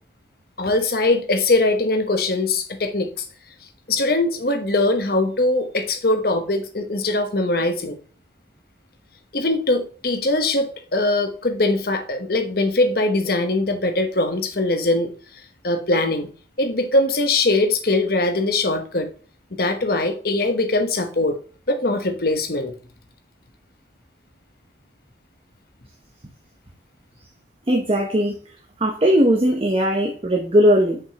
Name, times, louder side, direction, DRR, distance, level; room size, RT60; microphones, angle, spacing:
voice 1, 0.6-3.2 3.9-8.0 9.3-15.1 15.6-16.3 16.6-19.1 19.5-21.4 21.7-22.7, left 2 dB, 55° left, 1.1 m, -21 dB
voice 2, 27.7-28.4 28.8-31.1, equal, 30° right, 0.8 m, -18 dB
6.1 x 5.3 x 2.9 m
head